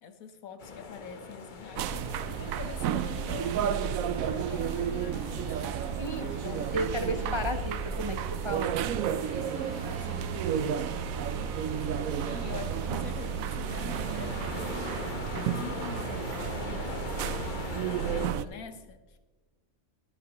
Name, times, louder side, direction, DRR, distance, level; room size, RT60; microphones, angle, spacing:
voice 1, 0.0-6.7 7.1-7.6 9.5-10.8 11.7-14.9 15.3-17.2 18.1-19.2, left 6 dB, 80° left, 9 dB, 1.4 m, -45 dB
sound 1, 0.6-18.3, left 4 dB, 40° left, 1.0 m, -41 dB
sound 2, 1.8-18.4, right 9 dB, 75° right, 1.0 m, -32 dB
voice 2, 6.7-8.2 8.4-8.8, right 1 dB, 35° right, 6 dB, 0.4 m, -32 dB
22.5 x 7.8 x 2.9 m, 1.2 s
omnidirectional pair, 1.5 m